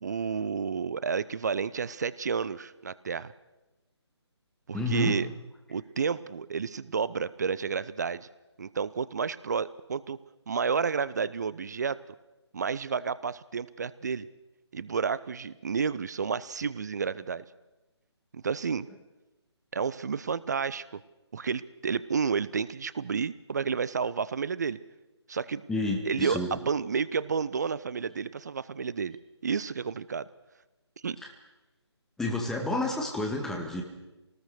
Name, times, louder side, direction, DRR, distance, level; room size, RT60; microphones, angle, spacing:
voice 1, 0.0-3.3 4.7-5.3 5.7-8.3 8.6-10.2 10.5-12.0 12.5-14.3 14.7-17.4 18.3-18.9 19.7-21.0 21.3-24.8 25.3-25.6 26.1-26.4 26.7-29.2 29.4-30.2 31.0-31.2, right 6 dB, 40° right, 18 dB, 0.7 m, -31 dB
voice 2, 4.7-5.2 25.7-26.6 31.2-31.3 32.2-33.8, left 1 dB, 5° left, 1 dB, 2.1 m, -30 dB
23.5 x 19.0 x 6.5 m, 1.0 s
figure-of-eight pair, 145°, 15 cm